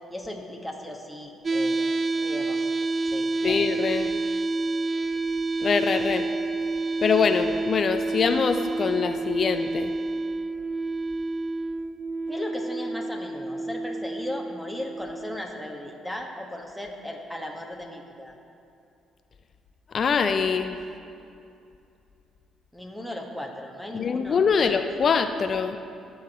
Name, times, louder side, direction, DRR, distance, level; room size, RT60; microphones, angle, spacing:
voice 1, 0.1-1.9 2.2-2.7 3.0-3.6 12.3-18.3 22.7-24.8, left 1 dB, ahead, 0 dB, 1.5 m, -37 dB
sound 1, 1.4-15.4, right 3 dB, 35° right, 0.4 m, -29 dB
voice 2, 3.4-4.1 5.6-6.3 7.0-9.9 19.9-20.8 23.9-25.8, left 6 dB, 50° left, 9 dB, 0.5 m, -24 dB
16.5 x 6.4 x 3.1 m, 2.6 s
hypercardioid pair, 50°, 0 cm